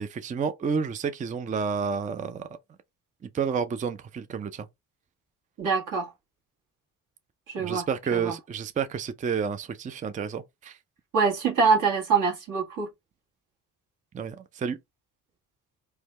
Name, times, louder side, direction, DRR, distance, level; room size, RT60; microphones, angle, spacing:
voice 1, 0.0-2.5 3.2-4.7 7.6-10.8 14.1-14.8, right 6 dB, 20° right, 0.4 m, -30 dB
voice 2, 5.6-6.1 7.5-7.9 8.1-8.3 11.1-12.9, right 5 dB, 55° right, 1.4 m, -24 dB
3.2 x 2.2 x 3.1 m
supercardioid pair, 65°, 38 cm